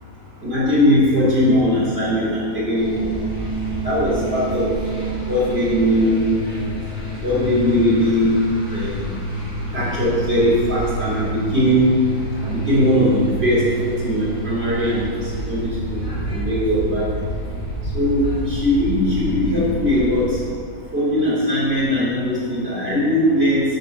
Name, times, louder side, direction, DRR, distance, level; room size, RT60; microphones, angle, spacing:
voice 1, 0.4-2.9 3.8-4.7 5.3-6.2 7.2-8.3 8.7-9.1 9.7-11.9 12.4-15.1 15.5-16.0 16.3-17.1 17.9-20.2 20.9-23.6, left 1 dB, 45° right, -7 dB, 3.5 m, -19 dB
sound 1, 2.8-20.4, right 2 dB, 30° left, 3.0 m, -28 dB
9.0 x 7.6 x 6.6 m, 2.1 s
omnidirectional pair, 1.6 m